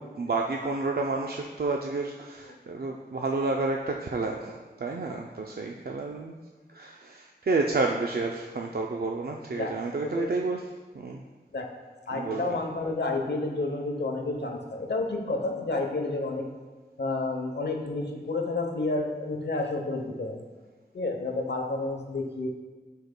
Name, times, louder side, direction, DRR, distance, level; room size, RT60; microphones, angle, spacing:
voice 1, 0.0-6.3 6.7-10.6 10.9-11.2 12.1-12.6, right 3 dB, 60° right, 1 dB, 0.4 m, -30 dB
voice 2, 12.1-16.4 17.0-20.4 20.9-22.5, left 2 dB, 75° left, 2 dB, 0.8 m, -30 dB
11.5 x 4.6 x 2.2 m, 1.3 s
wide cardioid pair, 70°, 18 cm